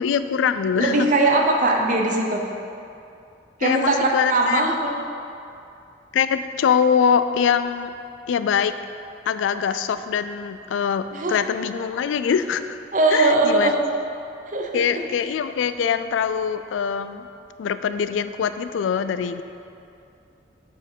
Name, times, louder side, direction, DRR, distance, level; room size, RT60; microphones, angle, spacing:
voice 1, 0.0-1.1 3.6-4.6 6.1-7.9 8.3-8.7 9.3-12.8 13.1-13.7 14.7-17.3 17.6-19.4, left 7 dB, 85° left, 11 dB, 0.3 m, -23 dB
voice 2, 0.8-2.4 3.6-5.0 11.1-11.4 12.9-13.8 14.5-15.0, right 2 dB, 45° right, 1 dB, 0.7 m, -20 dB
7.1 x 4.5 x 5.4 m, 2.6 s
head